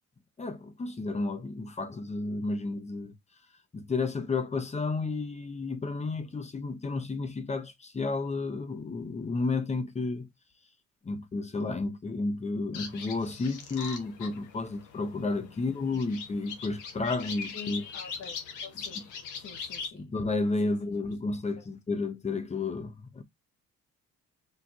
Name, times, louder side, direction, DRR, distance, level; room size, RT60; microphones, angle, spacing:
voice 1, 0.4-3.1 3.7-10.3 11.0-17.8 19.9-23.2, left 3 dB, 20° left, 0.8 m, -32 dB
sound 1, 12.7-19.9, left 6 dB, 90° left, 1.1 m, -41 dB
voice 2, 15.4-15.8 17.5-19.0 19.3-20.1 20.6-20.9 21.6-21.7, left 6 dB, 55° left, 1.2 m, -48 dB
4.6 x 2.5 x 3.7 m
cardioid pair, 90°, 30 cm